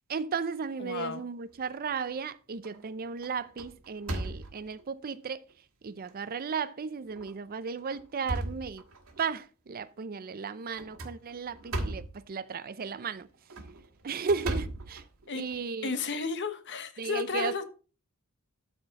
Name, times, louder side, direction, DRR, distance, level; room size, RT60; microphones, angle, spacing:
voice 1, 0.1-5.4 5.8-8.8 9.2-13.3 14.0-15.1 15.3-15.9 17.0-17.6, right 5 dB, 45° right, 0.5 m, -35 dB
voice 2, 0.8-1.2 15.3-15.4 15.8-17.6, left 5 dB, 55° left, 1.0 m, -33 dB
sound 1, 1.6-2.2 2.6-2.9 3.2-4.8 5.5-5.6 6.1-6.2 7.1-7.3 7.8-9.2 10.7-12.2 13.3-15.6, right 1 dB, 80° right, 1.8 m, -37 dB
12.5 x 4.4 x 4.0 m
head